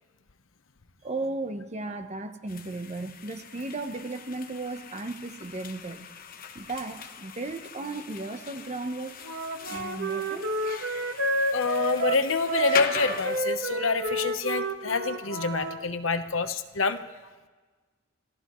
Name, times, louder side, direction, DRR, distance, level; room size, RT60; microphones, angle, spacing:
voice 1, 1.0-6.1 6.5-9.1 9.7-10.6, right 2 dB, 35° right, 8 dB, 0.9 m, -35 dB
sound 1, 2.5-13.4, left 6 dB, 45° left, 1.0 m, -40 dB
Wind instrument woodwind instrument, 9.2-15.8, right 2 dB, 75° right, 1.3 m, -30 dB
voice 2, 11.5-17.0, left 4 dB, 85° left, 10 dB, 1.0 m, -27 dB
28.5 x 15.5 x 3.1 m, 1.3 s
head